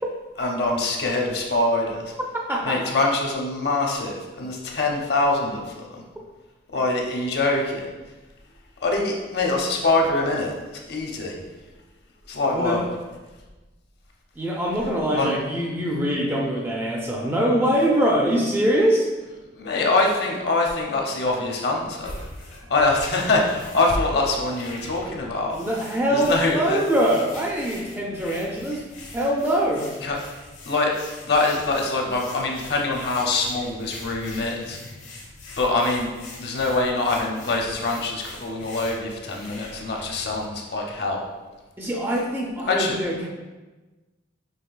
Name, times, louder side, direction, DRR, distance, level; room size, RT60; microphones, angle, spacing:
voice 1, 0.4-2.1 2.6-5.6 5.9-6.0 6.7-7.9 8.8-10.5 10.9-11.3 12.3-12.8 15.1-15.4 19.5-22.2 22.7-25.6 26.1-26.8 30.0-30.2 30.7-30.9 31.2-34.8 35.6-36.1 36.4-41.2 42.7-43.0, left 2 dB, 55° left, 0 dB, 0.7 m, -24 dB
voice 2, 2.5-2.8 12.5-12.8 14.4-19.1 25.5-28.8 29.1-29.9 41.8-43.3, equal, 10° right, -1 dB, 0.3 m, -23 dB
sound 1, 21.8-40.5, left 2 dB, 90° left, 1.1 m, -43 dB
5.7 x 3.1 x 2.4 m, 1.2 s
head